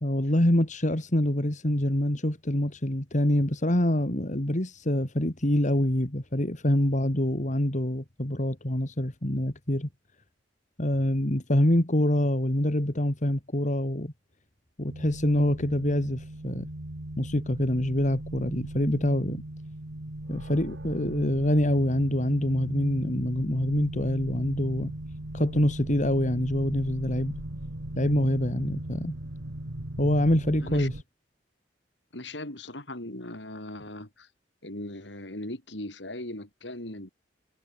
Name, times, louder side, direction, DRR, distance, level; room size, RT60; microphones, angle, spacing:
voice 1, 0.0-9.9 10.8-14.1 14.8-16.6 17.2-19.4 20.3-24.9 25.3-27.4 27.9-29.1 30.0-30.9, left 1 dB, 45° left, 2.7 m, -25 dB
sound 1, 14.9-31.0, right 1 dB, 90° right, 2.0 m, -38 dB
voice 2, 32.1-34.3 34.6-37.1, left 1 dB, 75° left, 5.3 m, -39 dB
head